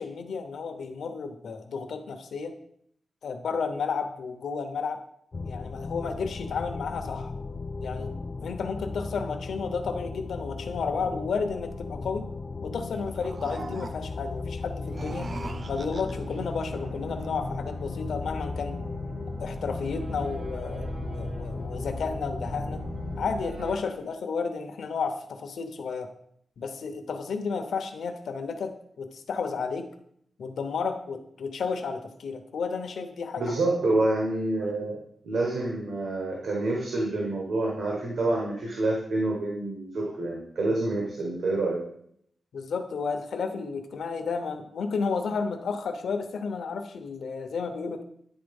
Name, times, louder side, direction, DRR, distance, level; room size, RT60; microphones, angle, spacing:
voice 1, 0.0-2.5 3.2-5.0 5.4-7.3 7.8-12.3 12.6-15.3 15.7-18.8 19.4-22.8 23.2-26.1 26.6-29.9 30.4-33.6 33.9-34.0 42.5-48.0, left 5 dB, 90° left, 7 dB, 0.8 m, -32 dB
sound 1, 5.3-23.4, left 4 dB, 35° left, 0.4 m, -36 dB
sound 2, 12.9-14.3 14.8-16.4, right 3 dB, 35° right, 0.4 m, -41 dB
sound 3, 14.9-23.8, right 3 dB, 60° right, 1.0 m, -41 dB
voice 2, 33.4-35.0 35.2-41.8, right 2 dB, 80° right, -2 dB, 1.3 m, -27 dB
9.8 x 3.9 x 5.3 m, 0.70 s
wide cardioid pair, 170°, 0 cm